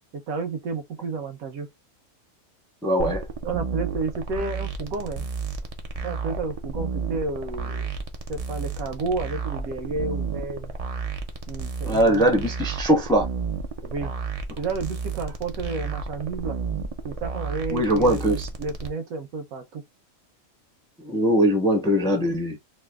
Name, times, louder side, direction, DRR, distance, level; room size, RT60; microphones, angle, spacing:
voice 1, 0.1-1.7 3.1-5.3 6.0-7.9 8.3-10.7 11.5-12.5 13.8-14.1 14.6-16.6 17.0-19.8 21.9-22.3, right 3 dB, 90° right, 1.3 m, -31 dB
voice 2, 2.8-3.2 11.8-13.3 17.7-18.5 21.0-22.6, right 1 dB, 5° left, 0.3 m, -21 dB
sound 1, 3.0-18.9, right 4 dB, 70° right, 0.3 m, -32 dB
3.1 x 2.1 x 3.3 m
omnidirectional pair, 1.4 m